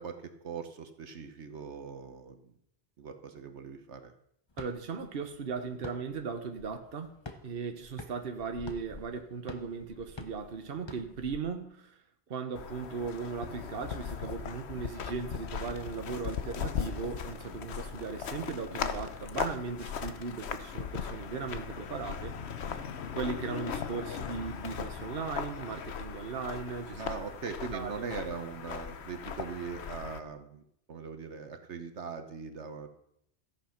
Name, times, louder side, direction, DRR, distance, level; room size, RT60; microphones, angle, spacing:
voice 1, 0.0-2.5 3.0-4.1 26.9-32.9, right 5 dB, 70° right, 7 dB, 1.4 m, -41 dB
sound 1, 4.5-11.4, left 3 dB, 25° left, 0.9 m, -49 dB
voice 2, 4.6-7.1 7.4-12.0 12.3-22.3 23.1-27.0 27.7-28.1, right 5 dB, 55° right, 6 dB, 1.3 m, -37 dB
sound 2, 12.5-30.2, left 7 dB, 65° left, 1.1 m, -38 dB
14.5 x 8.3 x 5.8 m, 0.73 s
omnidirectional pair, 1.2 m